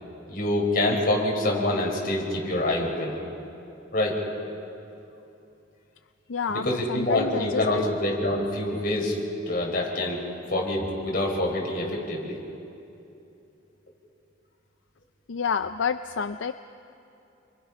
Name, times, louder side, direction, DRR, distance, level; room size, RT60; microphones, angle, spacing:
voice 1, 0.3-3.2 3.9-4.2 6.5-9.2 9.5-10.2 10.5-12.4, left 1 dB, 50° left, -1 dB, 5.2 m, -26 dB
voice 2, 6.3-7.8 15.3-16.5, left 6 dB, 80° left, 10 dB, 0.5 m, -29 dB
29.0 x 24.0 x 5.7 m, 2.7 s
head